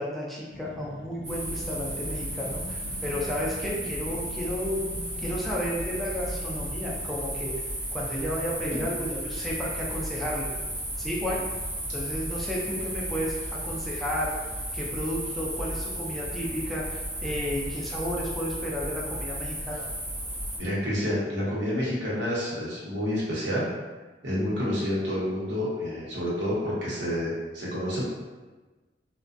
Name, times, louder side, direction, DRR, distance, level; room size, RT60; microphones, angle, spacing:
voice 1, 0.0-4.9 5.2-7.5 7.9-10.5 11.0-11.4 11.9-14.3 14.7-16.9 17.2-19.8, equal, ahead, -5 dB, 0.4 m, -32 dB
sound 1, 0.5-7.3, left 1 dB, 75° left, 0.3 m, -44 dB
sound 2, 1.2-20.6, right 1 dB, 40° right, 0.8 m, -34 dB
voice 2, 20.6-23.6 24.2-28.0, equal, 90° right, -6 dB, 0.8 m, -29 dB
2.4 x 2.2 x 2.5 m, 1.2 s
head